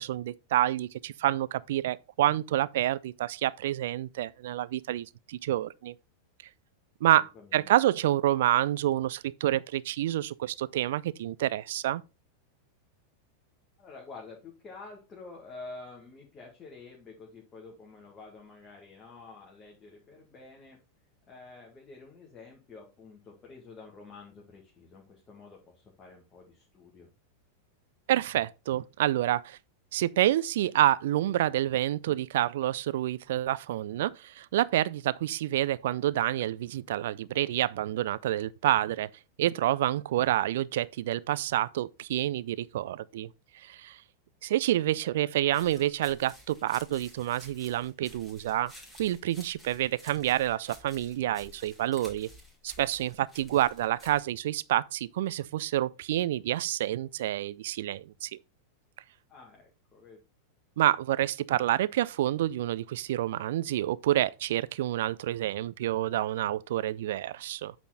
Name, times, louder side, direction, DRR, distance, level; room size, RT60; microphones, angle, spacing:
voice 1, 0.0-5.9 7.0-12.0 28.1-29.6 29.9-39.1 39.4-43.3 43.5-44.0 44.4-48.7 49.0-52.3 52.6-58.4 60.8-67.7, right 13 dB, 55° right, 0.4 m, -28 dB
voice 2, 7.2-7.7 13.8-20.8 21.3-27.1 45.0-45.3 59.3-60.2, left 3 dB, 25° left, 1.9 m, -49 dB
sound 1, 45.5-54.2, equal, 5° left, 2.6 m, -52 dB
8.3 x 4.2 x 4.2 m
figure-of-eight pair, 90°, 0 cm